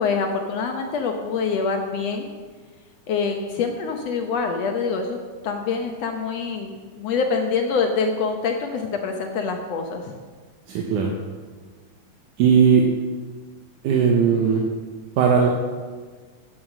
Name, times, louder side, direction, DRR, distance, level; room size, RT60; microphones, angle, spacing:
voice 1, 0.0-2.2 3.1-5.2 5.4-10.1, left 5 dB, 70° left, 3 dB, 1.7 m, -25 dB
voice 2, 10.7-11.1 12.4-12.9 13.8-14.6 15.2-15.5, right 6 dB, 75° right, 1 dB, 2.4 m, -17 dB
10.5 x 9.3 x 6.1 m, 1.5 s
omnidirectional pair, 3.8 m